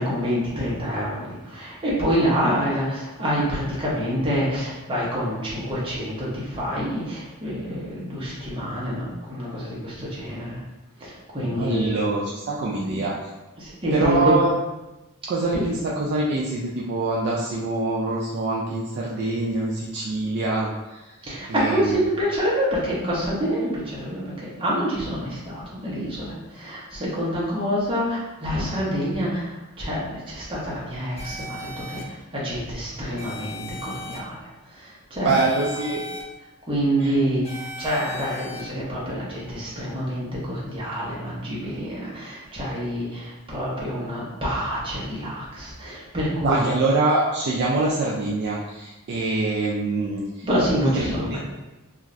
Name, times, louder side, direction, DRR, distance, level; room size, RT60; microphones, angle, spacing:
voice 1, 0.0-10.6 11.0-11.9 12.8-13.0 13.6-14.4 15.5-15.7 21.2-35.4 36.6-46.6 50.4-51.4, equal, 25° right, -7 dB, 0.8 m, -27 dB
voice 2, 11.4-13.3 13.9-14.5 15.3-21.2 21.5-22.0 35.2-36.0 37.0-37.1 46.4-50.5 50.8-51.4, right 2 dB, 50° right, -4 dB, 0.3 m, -25 dB
sound 1, 31.2-32.0 33.2-34.2 35.3-36.2 37.4-38.6, left 1 dB, 30° left, 0.4 m, -37 dB
2.5 x 2.4 x 3.1 m, 1.1 s
head